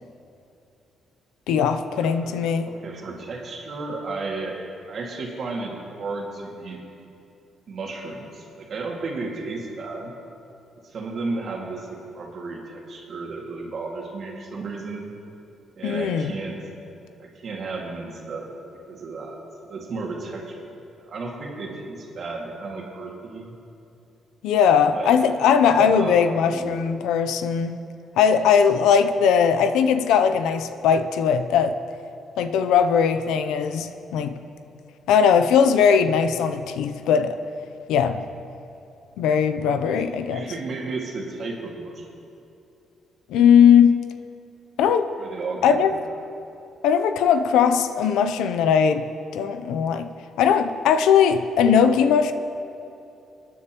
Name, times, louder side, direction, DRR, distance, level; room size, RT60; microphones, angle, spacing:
voice 1, 1.5-2.7 15.8-16.3 24.4-27.8 28.2-31.8 32.4-34.4 35.1-37.4 37.9-38.2 39.2-40.4 43.3-44.0 44.8-45.1 45.6-45.9 46.8-49.1 49.3-50.1 50.4-52.3, left 7 dB, 90° left, 9 dB, 0.5 m, -19 dB
voice 2, 2.0-2.3 2.7-4.6 4.9-6.8 7.7-10.1 10.8-15.1 15.8-16.6 17.2-18.5 18.9-19.4 19.6-20.7 21.0-23.5 24.9-25.2 25.6-26.7 39.8-42.1 45.2-45.9, right 3 dB, 55° right, -1 dB, 2.1 m, -33 dB
22.5 x 9.9 x 3.0 m, 2.8 s
cardioid pair, 90°, 0 cm